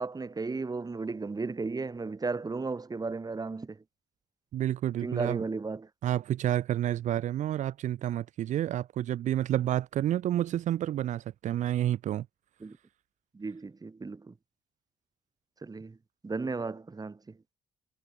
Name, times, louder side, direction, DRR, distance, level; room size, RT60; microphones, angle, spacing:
voice 1, 0.0-3.8 5.0-5.9 12.6-12.8 13.3-14.3 15.6-16.0 16.2-17.2, right 4 dB, 30° right, 2.5 m, -34 dB
voice 2, 4.5-5.4 6.0-12.2, right 12 dB, 70° right, 1.4 m, -29 dB
supercardioid pair, 55°, 13 cm